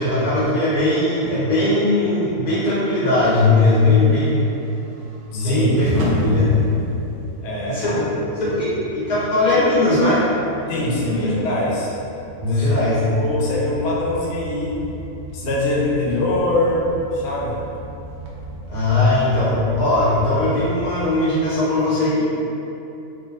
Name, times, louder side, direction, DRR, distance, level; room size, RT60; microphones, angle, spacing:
voice 1, 0.0-4.4 5.3-6.6 7.6-10.2 11.0-11.3 12.4-13.0 18.7-22.2, left 2 dB, 80° left, -10 dB, 1.6 m, -19 dB
sound 1, 3.2-21.1, left 1 dB, 65° right, 0.7 m, -34 dB
voice 2, 5.3-5.7 7.4-8.0 10.7-11.9 12.5-14.9 15.3-17.6, left 2 dB, 60° left, -5 dB, 0.6 m, -23 dB
3.2 x 2.2 x 2.8 m, 2.9 s
omnidirectional pair, 1.5 m